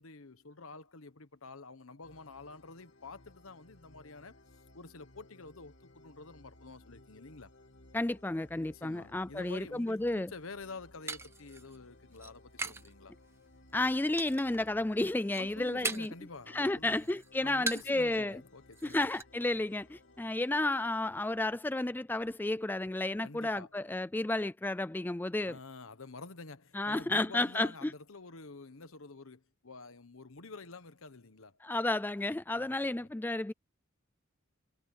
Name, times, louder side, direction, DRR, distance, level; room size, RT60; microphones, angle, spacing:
voice 1, 0.0-4.4 4.7-7.5 8.7-13.2 15.4-17.1 17.4-19.1 23.2-23.7 25.4-31.6 32.5-33.1, left 3 dB, 80° left, 1.2 m, -49 dB
sound 1, 2.0-21.1, left 2 dB, 60° left, 2.9 m, -60 dB
voice 2, 7.9-10.3 13.7-16.1 16.5-18.4 18.8-25.6 26.7-27.9 31.6-33.5, left 2 dB, 10° left, 0.3 m, -32 dB
sound 2, 10.4-12.9 13.2-13.7 14.2-14.7 15.0-16.3 16.6-18.0 18.3-18.4 18.7-19.2, right 3 dB, 10° right, 1.0 m, -40 dB
head